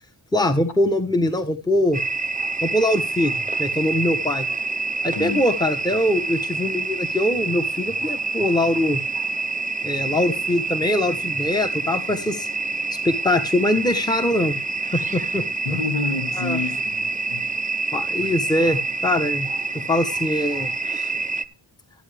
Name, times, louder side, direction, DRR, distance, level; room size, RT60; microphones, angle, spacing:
voice 1, 0.3-2.0 2.6-3.3 3.6-4.5 5.0-9.0 9.8-12.5 13.0-14.6 14.9-15.4 16.4-16.6 17.9-19.5 19.7-21.1, left 1 dB, 10° left, 1.0 m, -22 dB
sound 1, 1.9-21.4, right 3 dB, 15° right, 0.5 m, -27 dB
voice 2, 15.6-17.5 18.2-18.3, left 4 dB, 80° left, 2.2 m, -29 dB
14.0 x 8.4 x 3.4 m
wide cardioid pair, 130°, 47 cm